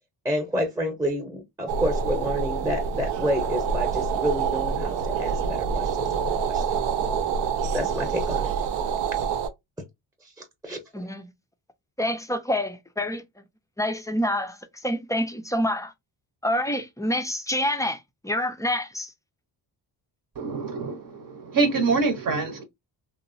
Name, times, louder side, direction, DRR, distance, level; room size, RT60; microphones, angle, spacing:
voice 1, 0.2-6.8 7.7-8.5 10.4-10.8, equal, 5° right, 0.8 m, -29 dB
sound 1, 1.7-9.5, right 6 dB, 70° right, 0.6 m, -26 dB
voice 2, 10.9-11.3 12.0-13.2 13.8-15.9 16.4-19.1, left 1 dB, 10° left, 0.4 m, -27 dB
voice 3, 20.3-22.6, right 4 dB, 45° right, 0.8 m, -25 dB
2.8 x 2.0 x 2.5 m
cardioid pair, 70°, 46 cm